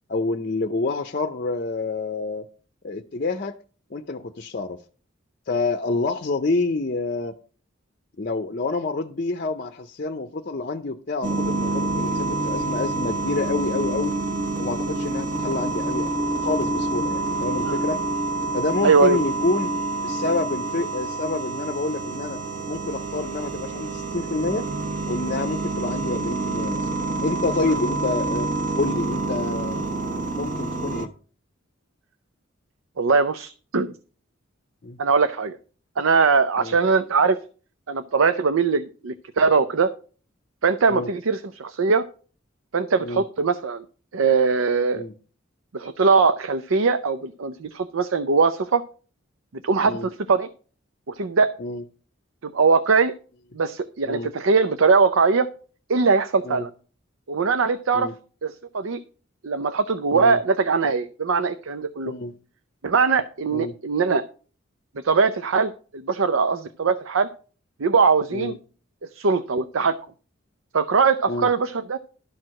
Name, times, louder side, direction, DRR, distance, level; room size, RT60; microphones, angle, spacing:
voice 1, 0.1-2.5 2.8-3.6 3.9-4.8 5.5-7.3 8.2-14.1 14.6-18.0 18.5-19.7 20.0-22.4 22.7-24.6 25.1-26.9 27.2-28.5 28.7-29.9 30.3-31.1 34.8-35.0 36.6-36.8 40.9-41.1 43.0-43.2 44.9-45.1 49.9-50.1 51.6-51.8 54.0-54.3 56.4-56.7 57.9-58.1 60.1-60.4 62.1-62.3 63.5-63.7 68.3-68.5 71.3-71.5, left 3 dB, 45° left, 8 dB, 0.6 m, -28 dB
sound 1, 11.2-31.1, right 2 dB, 40° right, 1.2 m, -27 dB
voice 2, 18.8-19.2 27.6-27.8 33.0-33.9 35.0-35.6 36.0-37.4 37.9-39.9 40.6-42.0 42.7-43.8 44.1-45.0 45.7-48.8 49.6-50.5 51.1-51.5 52.4-53.1 53.5-55.5 55.9-56.7 57.3-58.1 58.4-59.0 59.4-62.1 62.8-64.2 65.0-67.3 67.8-68.6 69.1-69.9 70.7-72.0, right 4 dB, 80° right, 11 dB, 0.6 m, -21 dB
12.0 x 4.6 x 6.3 m, 0.39 s
head